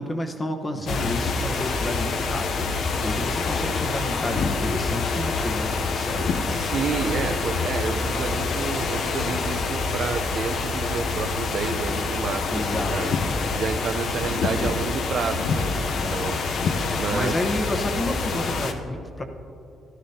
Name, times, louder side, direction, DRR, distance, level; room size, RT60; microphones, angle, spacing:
voice 1, 0.0-6.7 9.3-9.5 12.5-13.2 16.0-16.4 17.1-19.2, left 1 dB, 25° left, 5 dB, 1.1 m, -31 dB
sound 1, 0.8-18.7, left 4 dB, 65° left, 0.8 m, -26 dB
voice 2, 6.5-13.2 13.6-16.7 17.0-17.3, right 6 dB, 60° right, 8 dB, 0.7 m, -30 dB
14.0 x 12.5 x 2.9 m, 2.7 s
cardioid pair, 90°, 0 cm